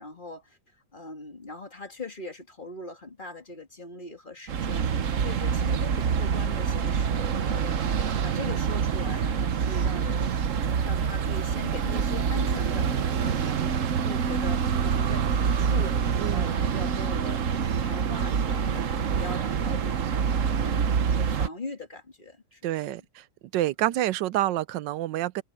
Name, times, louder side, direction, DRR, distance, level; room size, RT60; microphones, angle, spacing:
voice 1, 0.0-10.3 10.8-16.0 16.3-17.4 17.8-20.3 20.6-23.0, left 2 dB, 25° left, 2.7 m, -41 dB
sound 1, 4.5-21.5, right 7 dB, 50° right, 1.1 m, -26 dB
voice 2, 16.2-16.6 22.6-23.2 23.5-25.4, right 14 dB, 75° right, 1.3 m, -28 dB
omnidirectional pair, 2.0 m